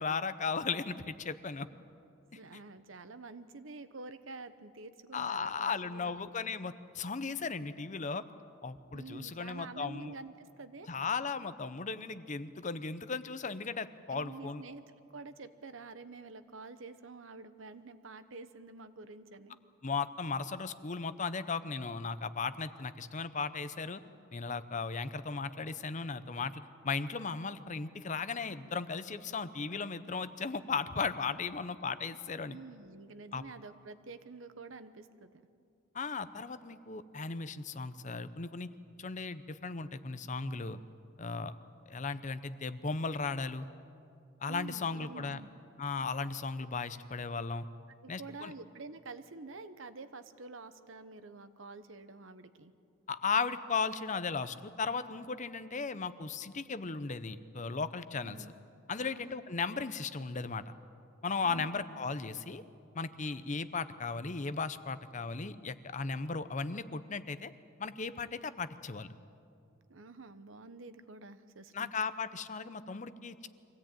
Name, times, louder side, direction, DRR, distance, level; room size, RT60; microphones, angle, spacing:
voice 1, 0.0-1.7 5.1-8.2 8.6-10.1 10.9-14.6 19.8-24.0 24.3-32.6 33.3-33.4 35.9-38.7 39.0-40.8 41.2-41.6 41.9-43.7 44.4-45.4 45.8-47.6 48.1-48.5 53.1-58.4 58.9-60.6 61.2-62.6 62.9-67.5 67.8-69.1 71.7-73.5, left 4 dB, 40° left, 13 dB, 0.7 m, -36 dB
voice 2, 2.3-6.3 8.9-10.9 14.1-14.8 15.1-19.6 32.4-35.4 44.5-45.5 48.0-52.7 58.2-58.5 59.0-59.4 61.4-61.7 69.9-71.9, right 3 dB, 75° right, 11 dB, 1.0 m, -48 dB
24.5 x 16.5 x 9.0 m, 2.5 s
head